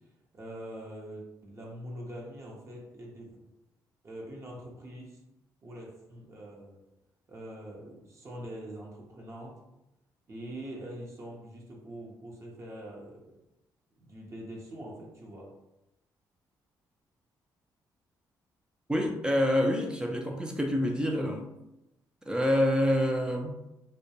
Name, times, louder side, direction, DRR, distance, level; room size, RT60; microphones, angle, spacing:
voice 1, 0.3-3.3 4.0-5.2 5.6-6.8 7.3-9.6 10.3-13.3 14.0-15.5, right 1 dB, 40° right, -2 dB, 0.7 m, -43 dB
voice 2, 18.9-21.5 22.3-23.5, left 1 dB, 10° right, 2 dB, 0.3 m, -27 dB
2.1 x 2.1 x 2.8 m, 0.91 s
cardioid pair, 85°, 8 cm